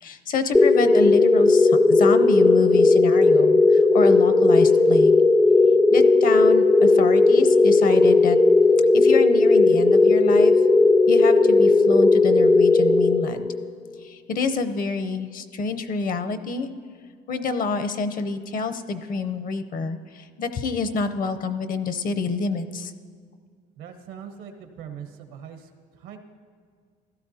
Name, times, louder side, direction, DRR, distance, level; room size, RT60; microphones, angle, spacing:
voice 1, 0.0-5.2 5.9-8.4 8.9-10.5 11.1-13.5 14.0-16.7 17.3-22.9, left 4 dB, 50° left, 10 dB, 0.7 m, -27 dB
sound 1, 0.5-13.7, left 3 dB, 10° left, 0.3 m, -16 dB
voice 2, 23.8-25.7 26.0-26.2, right 8 dB, 90° right, 5 dB, 1.2 m, -41 dB
15.5 x 12.5 x 2.8 m, 2.1 s
cardioid pair, 105°, 19 cm